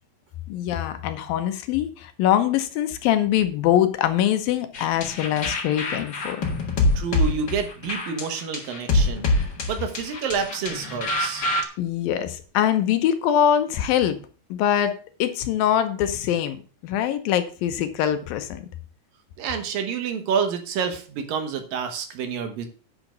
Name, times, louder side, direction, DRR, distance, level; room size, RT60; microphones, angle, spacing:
voice 1, 0.5-6.5 11.8-14.2 14.5-16.6 16.8-18.7, left 10 dB, 80° left, 9 dB, 2.6 m, -23 dB
sound 1, 4.7-11.6, left 2 dB, 50° left, 1.3 m, -25 dB
voice 2, 7.0-11.5 19.4-22.7, right 6 dB, 70° right, 6 dB, 3.0 m, -28 dB
10.0 x 5.1 x 6.7 m, 0.38 s
omnidirectional pair, 4.2 m